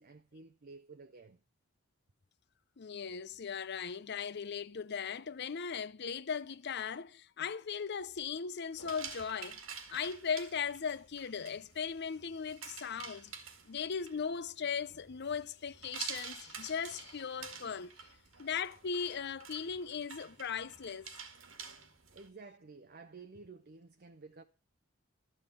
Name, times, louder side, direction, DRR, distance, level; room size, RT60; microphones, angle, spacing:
voice 1, 0.0-1.4 22.1-24.4, right 4 dB, 50° right, 0.7 m, -53 dB
voice 2, 2.8-9.6 9.9-13.3 13.7-17.9 18.4-21.1, left 6 dB, 55° left, 0.6 m, -38 dB
sound 1, 8.8-22.3, right 6 dB, 85° right, 2.2 m, -49 dB
13.5 x 5.5 x 8.3 m
head